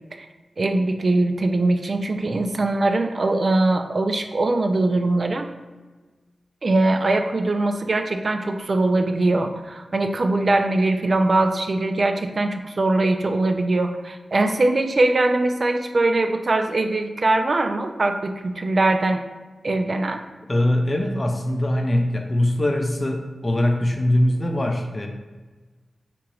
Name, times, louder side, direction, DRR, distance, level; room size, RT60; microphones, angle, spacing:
voice 1, 0.6-5.5 6.6-19.2 19.6-20.2, right 2 dB, 50° right, 5 dB, 0.3 m, -21 dB
voice 2, 20.5-25.1, left 1 dB, 30° left, 4 dB, 0.5 m, -22 dB
3.6 x 2.9 x 3.0 m, 1.3 s
wide cardioid pair, 75°, 0 cm